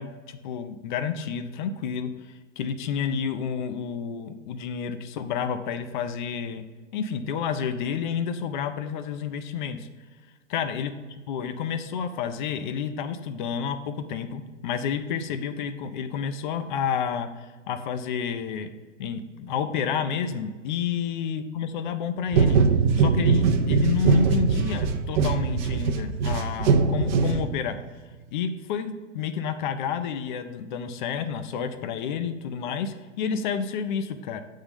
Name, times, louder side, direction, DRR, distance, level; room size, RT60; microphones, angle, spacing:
voice 1, 0.0-6.6 6.9-9.9 10.5-18.7 19.0-22.6 23.0-27.8 28.3-34.4, left 7 dB, 40° left, 9 dB, 0.6 m, -30 dB
sound 1, 22.3-27.8, right 5 dB, 40° right, 0.6 m, -22 dB
8.7 x 3.7 x 5.2 m, 1.4 s
figure-of-eight pair, 105°, 37 cm